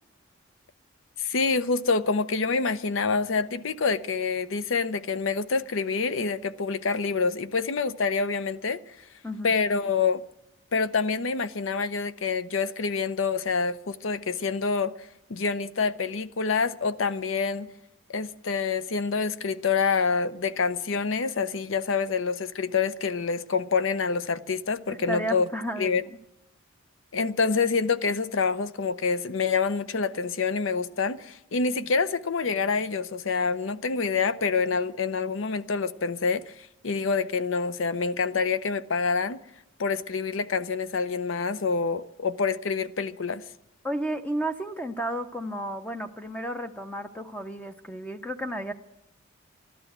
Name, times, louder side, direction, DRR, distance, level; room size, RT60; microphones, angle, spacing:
voice 1, 1.2-8.8 9.4-10.2 10.7-14.9 15.3-17.7 18.1-25.4 25.8-26.0 27.1-36.5 36.8-39.4 39.8-43.4, left 5 dB, 70° left, 0.7 m, -27 dB
voice 2, 25.1-26.0 43.8-48.7, right 1 dB, 5° left, 0.6 m, -32 dB
13.5 x 12.0 x 7.9 m
head